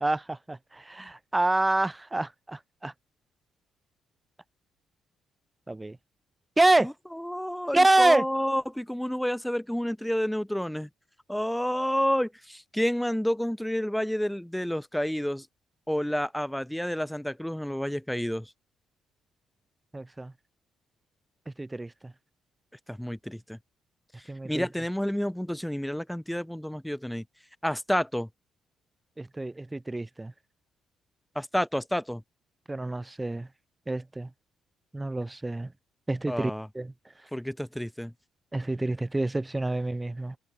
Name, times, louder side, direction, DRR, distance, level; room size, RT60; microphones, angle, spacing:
voice 1, 0.0-2.9 5.7-6.0 6.6-6.9 7.7-8.2 19.9-20.3 21.5-22.1 24.3-24.7 29.2-30.3 32.7-33.5 33.9-34.3 34.9-35.7 36.1-36.9 38.5-40.4, right 2 dB, 15° right, 0.4 m, -27 dB
voice 2, 6.8-10.9 11.3-15.5 15.9-18.5 22.9-23.6 24.4-27.2 27.6-28.3 31.3-32.2 36.3-36.7 37.3-38.1, equal, 5° left, 0.9 m, -29 dB
cardioid pair, 90°, 0 cm